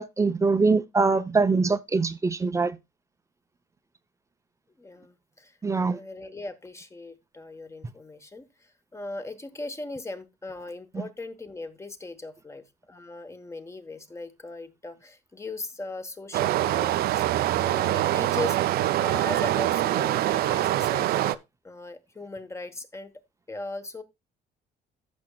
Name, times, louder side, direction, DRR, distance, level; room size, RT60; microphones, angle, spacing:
voice 1, 0.0-2.8 5.6-6.0, right 4 dB, 15° right, 0.6 m, -23 dB
voice 2, 4.8-5.6 5.9-17.3 17.5-21.4 21.6-23.1 23.5-24.0, left 2 dB, 15° left, 1.1 m, -39 dB
Stream, 16.3-21.3, right 14 dB, 65° right, 0.5 m, -24 dB
14.5 x 6.3 x 2.3 m
cardioid pair, 110°, 17 cm